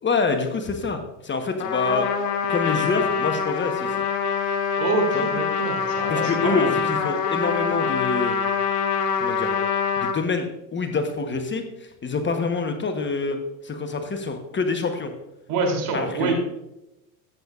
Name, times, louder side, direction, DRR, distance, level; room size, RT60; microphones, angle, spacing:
voice 1, 0.0-2.1 2.5-4.0 5.1-5.3 6.1-8.4 9.2-9.5 10.0-10.5 10.7-13.4 13.6-15.1 15.9-16.3, left 4 dB, 25° left, 6 dB, 1.1 m, -26 dB
Trumpet, 1.6-10.1, left 6 dB, 75° left, 1.4 m, -25 dB
voice 2, 4.8-6.7 15.5-16.3, right 4 dB, 60° right, 2 dB, 3.2 m, -26 dB
13.0 x 8.3 x 2.4 m, 0.90 s
hypercardioid pair, 85°, 47 cm